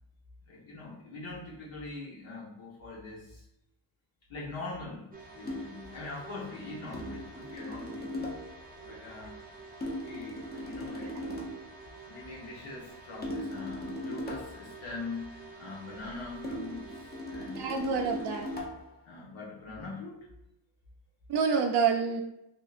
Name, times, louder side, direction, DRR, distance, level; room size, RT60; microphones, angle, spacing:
voice 1, 0.4-3.4 4.3-9.4 10.0-11.5 12.1-17.9 19.0-20.3, left 3 dB, 70° left, -5 dB, 1.0 m, -43 dB
sound 1, 5.1-18.6, right 3 dB, 20° right, 0.7 m, -49 dB
sound 2, 5.4-5.8 6.9-8.6 9.8-11.7 13.2-14.7 16.4-19.0, left 1 dB, 20° left, 0.6 m, -38 dB
voice 2, 17.6-18.5 21.3-22.2, right 6 dB, 55° right, 1 dB, 0.5 m, -27 dB
3.6 x 2.6 x 2.5 m, 0.84 s
cardioid pair, 100°, 50 cm